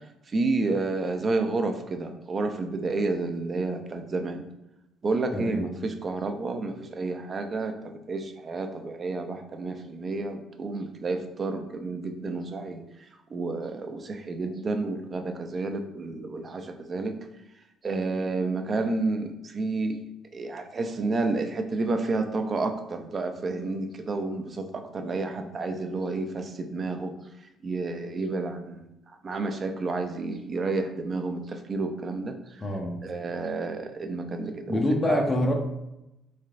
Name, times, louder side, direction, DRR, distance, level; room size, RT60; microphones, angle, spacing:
voice 1, 0.3-4.5 5.0-12.8 13.3-17.2 17.8-20.0 20.3-27.2 27.6-28.9 29.2-32.6 33.0-35.2, right 3 dB, 35° right, 6 dB, 0.4 m, -30 dB
voice 2, 5.3-5.7 32.6-33.0 34.7-35.5, left 1 dB, 25° left, 1 dB, 0.5 m, -26 dB
3.5 x 3.2 x 2.4 m, 0.90 s
cardioid pair, 95°, 0 cm